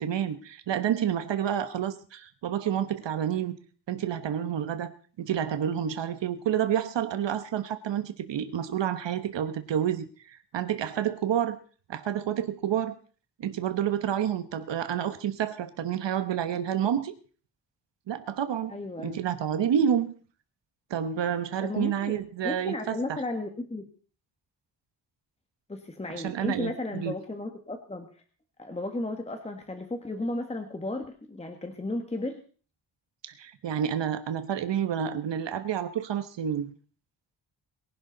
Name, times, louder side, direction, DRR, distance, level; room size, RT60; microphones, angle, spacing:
voice 1, 0.0-3.5 3.9-11.6 11.9-12.9 13.4-17.1 18.1-20.1 20.9-23.2 26.1-27.1 33.4-36.7, right 9 dB, 80° right, 10 dB, 1.4 m, -29 dB
voice 2, 18.7-19.2 21.6-22.1 22.4-23.9 25.7-28.1 28.6-32.4, left 2 dB, 15° left, 5 dB, 1.6 m, -34 dB
22.5 x 11.5 x 4.1 m, 0.40 s
wide cardioid pair, 170°, 43 cm